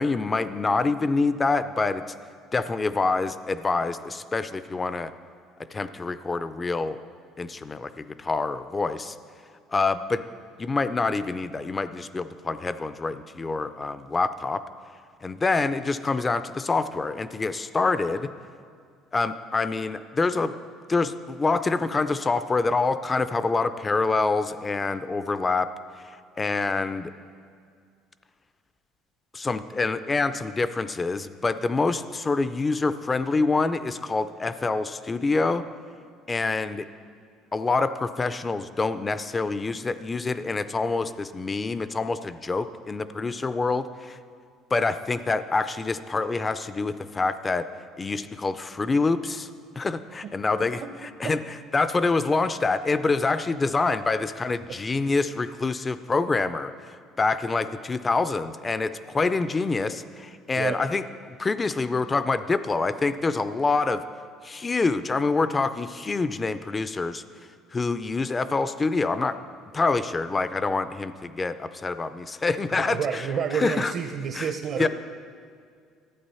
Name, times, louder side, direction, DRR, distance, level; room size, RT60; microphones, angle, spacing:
voice 1, 0.0-2.0 2.5-5.1 5.7-7.0 7.4-9.1 9.7-10.2 10.6-14.6 15.2-18.3 19.1-20.5 20.9-25.7 26.4-27.1 29.3-35.6 36.3-36.8 37.5-44.2 44.7-47.7 48.0-49.5 49.7-51.4 51.7-56.7 57.2-64.0 64.4-67.2 67.7-69.3 69.7-73.2 73.5-73.9 74.3-74.5 74.8-74.9, left 3 dB, 15° left, 13 dB, 0.3 m, -26 dB
voice 2, 72.7-74.9, right 7 dB, 45° right, 6 dB, 0.5 m, -29 dB
12.0 x 8.6 x 5.5 m, 2.2 s
cardioid pair, 155°, 0 cm